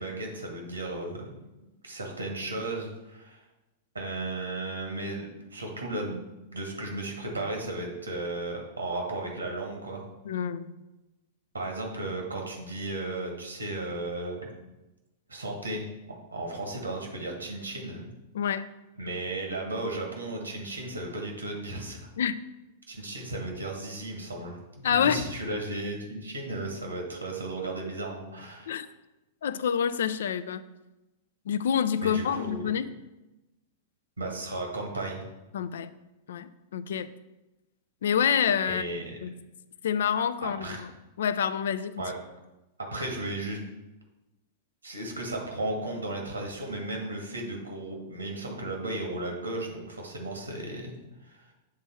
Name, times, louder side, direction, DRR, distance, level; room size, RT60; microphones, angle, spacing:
voice 1, 0.0-1.3 1.8-3.4 3.9-6.2 6.5-10.0 11.5-14.5 15.3-18.1 19.0-22.0 22.9-28.8 32.0-32.7 34.2-35.2 38.7-39.2 40.4-40.9 42.0-42.1 42.9-43.6 44.8-50.9 51.2-51.5, right 2 dB, 85° right, 1 dB, 1.5 m, -35 dB
voice 2, 10.3-10.8 18.3-18.7 22.2-22.4 24.8-25.2 28.7-28.9 29.4-30.6 31.5-32.9 35.5-35.9 36.3-37.1 38.0-38.8 39.2-39.3 39.8-40.9 41.2-42.0, left 8 dB, 65° left, 15 dB, 0.3 m, -27 dB
7.6 x 3.5 x 4.5 m, 1.0 s
figure-of-eight pair, 100°, 0 cm